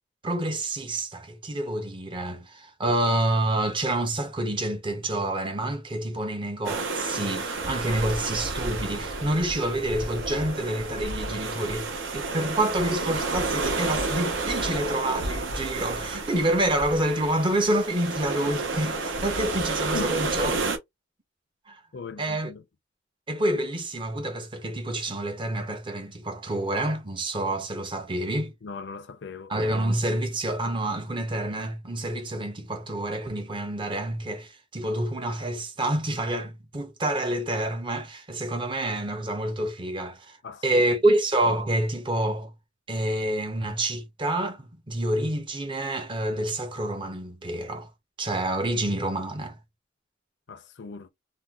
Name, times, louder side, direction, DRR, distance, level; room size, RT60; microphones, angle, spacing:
voice 1, 0.2-20.5 21.7-21.8 22.2-22.5 23.3-28.5 29.5-40.4 40.6-42.5 42.9-47.9 48.2-49.6, right 1 dB, 25° right, 0.6 m, -28 dB
sound 1, 6.6-20.8, right 3 dB, 75° right, 0.8 m, -30 dB
voice 2, 21.9-22.6 28.6-29.5 40.4-40.8 50.5-51.1, left 4 dB, 60° left, 0.5 m, -38 dB
3.6 x 2.2 x 2.3 m
head